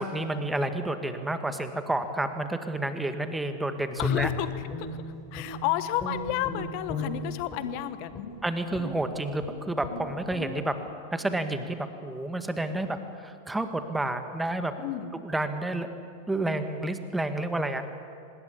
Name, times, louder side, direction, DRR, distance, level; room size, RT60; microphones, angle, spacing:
voice 1, 0.0-4.3 8.4-10.8 11.1-14.7 15.2-15.9 16.3-17.9, right 2 dB, 5° right, 8 dB, 1.9 m, -30 dB
voice 2, 4.0-4.5 4.8-8.3 14.8-15.1, left 14 dB, 45° left, 13 dB, 1.3 m, -32 dB
Guitar, 4.0-5.7 6.0-7.7 8.1-8.3 8.7-9.0 9.4-9.5 9.8-10.0 10.3-10.5, left 4 dB, 20° left, 7.8 m, -34 dB
25.5 x 20.5 x 8.6 m, 2.6 s
figure-of-eight pair, 90°, 0 cm